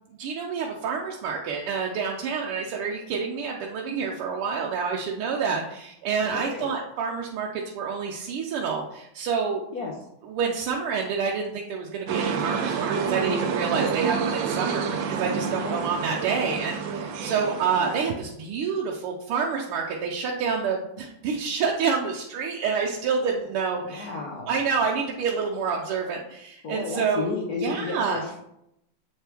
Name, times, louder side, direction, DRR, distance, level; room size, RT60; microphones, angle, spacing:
voice 1, 0.2-9.6 10.2-24.1 24.5-27.3 27.6-28.2, right 5 dB, 90° right, -1 dB, 1.6 m, -28 dB
voice 2, 6.2-6.7 9.7-9.9 15.6-15.9 23.8-24.5 26.6-28.4, left 4 dB, 60° left, -1 dB, 1.1 m, -32 dB
sound 1, 12.1-18.1, right 6 dB, 70° right, 1.3 m, -28 dB
8.1 x 4.5 x 3.4 m, 0.81 s
omnidirectional pair, 2.3 m